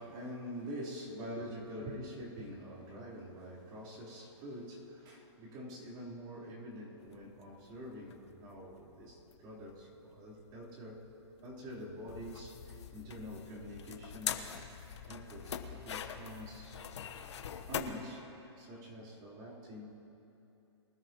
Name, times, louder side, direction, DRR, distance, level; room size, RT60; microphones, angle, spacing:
voice 1, 0.0-11.0 11.4-14.5 15.1-16.9 17.7-18.3 18.6-20.0, equal, 30° right, -6 dB, 3.7 m, -46 dB
sound 1, 7.0-17.8, left 8 dB, 70° left, 1.1 m, -44 dB
23.5 x 13.0 x 3.0 m, 3.0 s
hypercardioid pair, 145°, 15 cm